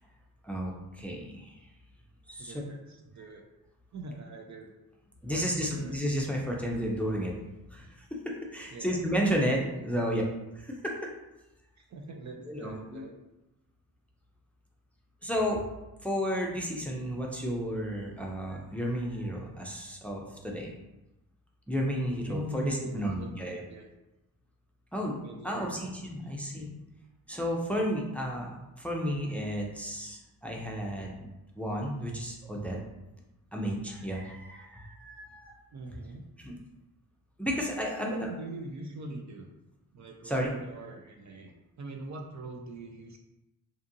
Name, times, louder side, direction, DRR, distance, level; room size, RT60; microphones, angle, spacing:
voice 1, 0.4-1.5 2.3-2.5 5.2-7.4 7.7-10.2 10.6-11.1 12.5-13.0 15.2-15.6 16.0-20.7 21.7-23.6 24.9-25.1 25.4-26.7 27.3-31.3 31.6-32.8 33.5-35.6 36.4-36.5 37.4-38.3 40.2-40.5, equal, 5° left, -1 dB, 0.5 m, -32 dB
voice 2, 2.4-3.5 3.9-4.7 5.2-6.0 8.7-9.0 9.3-9.8 11.8-13.1 22.3-23.9 25.2-25.7 26.0-26.3 35.7-36.2 37.8-39.5 39.9-43.2, right 2 dB, 50° right, 2 dB, 0.5 m, -42 dB
2.6 x 2.4 x 2.6 m, 0.97 s
cardioid pair, 60°, 39 cm